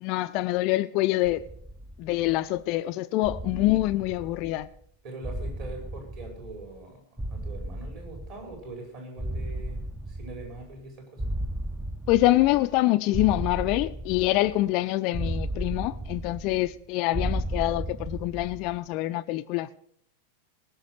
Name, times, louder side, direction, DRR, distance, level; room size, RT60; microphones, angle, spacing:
voice 1, 0.0-1.4 2.0-4.7 12.1-19.7, left 17 dB, 40° left, 0.5 m, -25 dB
sound 1, 1.2-2.6 3.2-4.8 5.2-6.9 7.2-8.8 9.2-10.8 11.2-12.8 13.1-14.7 15.1-16.8 17.1-18.8, right 1 dB, 5° right, 0.6 m, -35 dB
voice 2, 5.0-7.0 7.3-11.2, right 2 dB, 45° right, 5.1 m, -42 dB
18.5 x 6.4 x 6.6 m
figure-of-eight pair, 90°, 0 cm